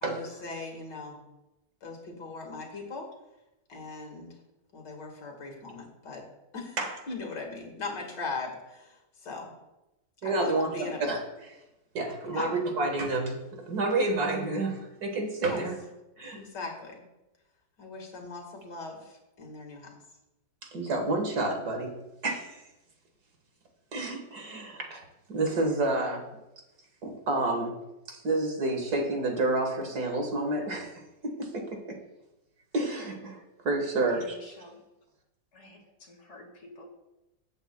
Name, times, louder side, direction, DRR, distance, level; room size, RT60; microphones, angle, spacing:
voice 1, 0.0-1.2 1.8-3.1 3.7-4.4 4.7-6.3 6.5-9.5 10.2-11.0 12.2-12.5 15.4-15.7 16.3-17.0 17.8-20.0, left 3 dB, 75° left, 1 dB, 2.4 m, -39 dB
voice 2, 10.2-10.7 11.1-11.2 11.5-11.6 11.9-15.7 16.2-16.4 20.7-22.0 22.2-22.6 23.9-25.0 25.3-26.3 27.0-27.8 28.1-32.0 32.7-34.4, right 2 dB, 60° right, 3 dB, 1.9 m, -29 dB
voice 3, 34.0-34.8 35.5-36.9, left 1 dB, 40° left, 2 dB, 2.0 m, -50 dB
17.5 x 8.0 x 2.2 m, 0.96 s
omnidirectional pair, 1.9 m